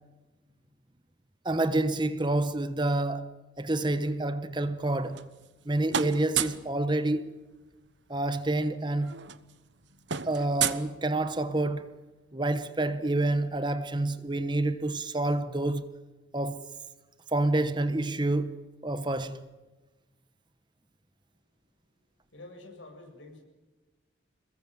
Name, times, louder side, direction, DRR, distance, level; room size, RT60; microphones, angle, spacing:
voice 1, 1.4-3.3 3.6-5.3 5.6-7.3 8.1-9.2 10.2-11.9 12.3-15.9 16.3-16.6 17.3-18.6 18.8-19.4, right 2 dB, 25° right, 1.2 m, -28 dB
sound 1, 4.8-5.6 5.9-6.7 8.1-8.2 8.4-8.6 8.9-11.5, right 8 dB, 70° right, 1.1 m, -33 dB
voice 2, 22.3-23.4, left 2 dB, 85° left, 7.4 m, -48 dB
27.5 x 21.5 x 7.7 m
head